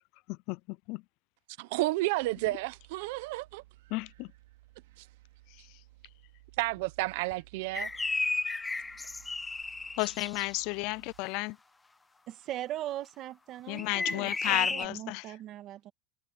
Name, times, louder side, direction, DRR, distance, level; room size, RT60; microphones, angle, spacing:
voice 1, 0.3-1.0 3.9-4.3 10.0-11.6 13.7-15.2, left 25 dB, 50° left, 0.4 m, -33 dB
voice 2, 1.6-3.6 5.0-5.1 6.6-7.9, right 20 dB, 65° right, 0.7 m, -31 dB
sound 1, 2.2-11.2, right 18 dB, 80° right, 4.5 m, -58 dB
sound 2, 7.7-10.5 13.8-14.9, left 3 dB, 10° left, 0.8 m, -33 dB
voice 3, 12.3-15.9, right 13 dB, 35° right, 2.1 m, -40 dB
supercardioid pair, 150°, 0 cm